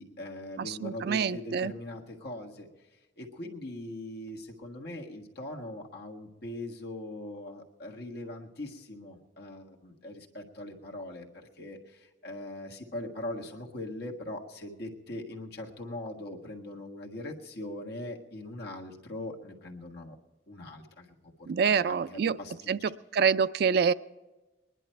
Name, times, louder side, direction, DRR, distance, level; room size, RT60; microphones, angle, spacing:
voice 1, 0.0-2.7 3.2-20.1 20.5-21.3 21.6-22.7, left 1 dB, 60° left, 0 dB, 1.6 m, -41 dB
voice 2, 0.6-1.7 21.5-22.4 22.7-22.8 23.1-23.9, right 6 dB, 55° right, 15 dB, 0.3 m, -26 dB
20.5 x 11.0 x 4.5 m, 1.1 s
head